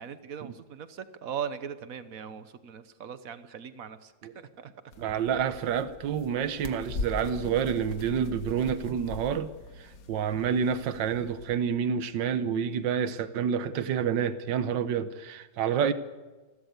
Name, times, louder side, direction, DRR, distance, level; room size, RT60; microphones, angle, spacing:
voice 1, 0.0-4.7, right 8 dB, 55° right, 12 dB, 1.4 m, -39 dB
sound 1, 4.9-11.6, left 3 dB, 55° left, 1.7 m, -41 dB
voice 2, 5.0-9.5 10.1-15.9, right 7 dB, 85° right, 12 dB, 1.6 m, -28 dB
28.5 x 12.5 x 8.2 m, 1.2 s
omnidirectional pair, 2.0 m